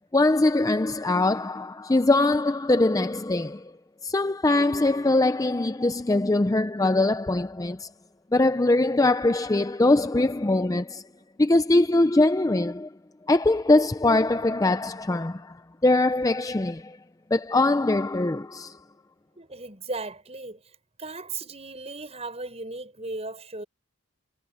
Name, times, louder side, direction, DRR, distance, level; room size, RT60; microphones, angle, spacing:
voice 1, 0.1-3.7 4.0-7.9 8.3-11.0 11.4-12.9 13.3-17.0 17.3-18.8, left 2 dB, 15° left, 0.4 m, -22 dB
voice 2, 19.4-20.6 21.0-23.6, right 3 dB, 30° right, 6.7 m, -36 dB
head